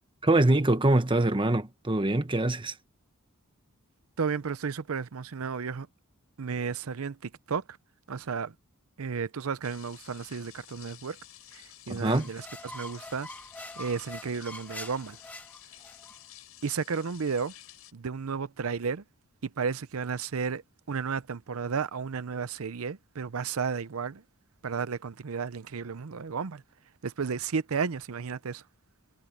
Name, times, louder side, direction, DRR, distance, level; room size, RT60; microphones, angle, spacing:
voice 1, 0.2-2.7 11.9-12.3, right 2 dB, 25° right, 1.3 m, -24 dB
voice 2, 4.2-5.9 6.4-7.6 8.1-8.5 9.0-11.2 11.5-13.3 13.8-15.2 16.6-17.5 17.9-19.0 19.4-20.6 20.9-24.2 24.6-26.6 27.0-28.6, right 5 dB, 90° right, 0.6 m, -33 dB
sound 1, 9.6-17.9, left 13 dB, 85° left, 7.6 m, -52 dB
sound 2, 12.1-16.2, left 1 dB, 10° left, 1.7 m, -44 dB
head